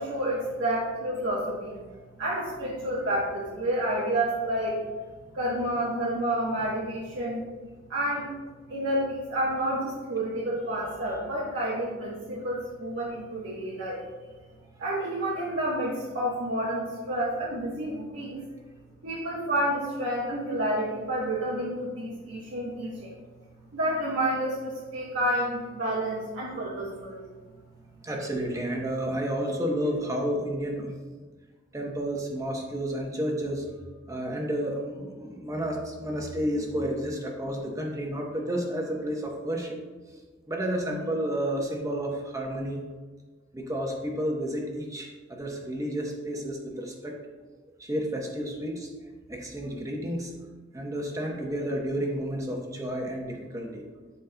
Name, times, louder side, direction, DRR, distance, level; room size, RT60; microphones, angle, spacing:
voice 1, 0.0-1.8 2.2-4.8 5.3-7.4 7.9-8.3 8.7-14.0 14.8-18.4 19.0-23.2 23.7-27.2, right 1 dB, 70° right, -6 dB, 1.1 m, -29 dB
voice 2, 28.0-30.9 31.7-33.7 34.1-39.8 40.5-42.8 43.5-47.1 47.8-48.9 49.3-50.3 50.7-53.8, equal, 15° right, 0 dB, 0.9 m, -31 dB
11.5 x 4.2 x 2.2 m, 1.4 s
head